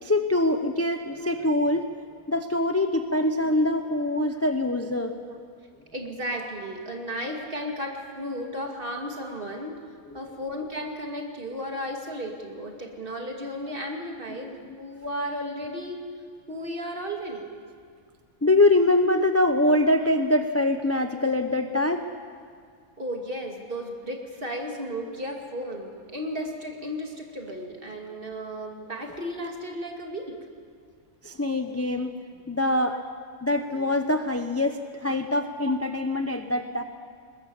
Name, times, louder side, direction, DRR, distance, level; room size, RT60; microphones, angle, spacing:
voice 1, 0.0-1.9 2.3-5.1 18.4-22.1 31.2-32.1 32.5-33.0 33.4-34.8 35.0-36.8, left 2 dB, 15° left, 7 dB, 0.7 m, -23 dB
voice 2, 5.0-5.4 5.9-9.8 10.1-16.0 16.5-17.5 23.0-30.4 35.6-35.8, equal, 40° right, 1 dB, 2.8 m, -34 dB
21.0 x 21.0 x 7.2 m, 2.1 s
omnidirectional pair, 1.4 m